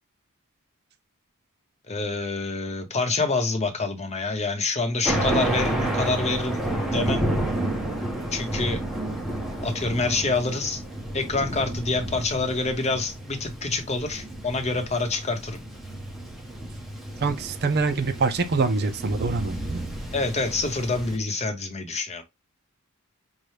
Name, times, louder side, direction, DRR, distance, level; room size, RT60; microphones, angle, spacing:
voice 1, 1.9-6.6 6.9-7.3 8.3-8.8 9.6-10.8 11.1-15.6 20.1-22.2, left 3 dB, 30° left, 0.9 m, -27 dB
Thunder, 5.1-21.2, right 1 dB, ahead, 0.9 m, -31 dB
voice 2, 17.2-19.8, right 4 dB, 50° right, 0.5 m, -25 dB
5.5 x 2.2 x 3.2 m
head